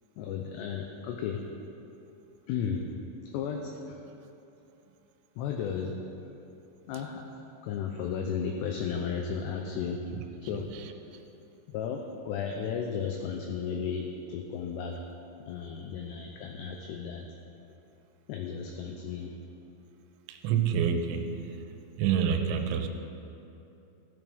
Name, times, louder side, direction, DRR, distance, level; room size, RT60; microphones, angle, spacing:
voice 1, 0.2-1.4 2.5-2.9 3.3-4.0 5.4-5.9 6.9-7.3 7.6-10.0 10.4-10.7 11.7-14.9 15.5-17.3 18.3-19.4, left 7 dB, 80° left, 2 dB, 2.6 m, -34 dB
voice 2, 10.5-10.9 20.3-21.6 22.0-22.9, right 8 dB, 85° right, 6 dB, 3.1 m, -28 dB
15.5 x 11.0 x 3.5 m, 2.9 s
omnidirectional pair, 5.4 m